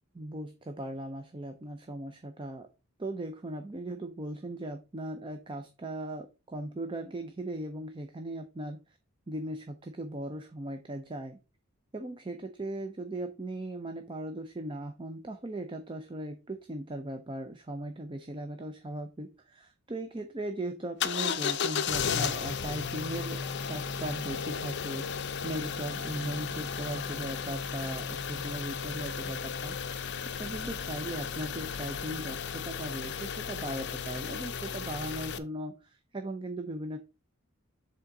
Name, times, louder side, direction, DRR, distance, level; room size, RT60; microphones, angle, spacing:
voice 1, 0.1-2.7 3.0-9.0 9.3-11.4 11.9-30.1 30.4-37.0, right 1 dB, 25° right, 6 dB, 0.5 m, -38 dB
sound 1, 21.0-35.4, left 6 dB, 55° left, 0.5 m, -34 dB
7.2 x 3.7 x 3.8 m, 0.30 s
head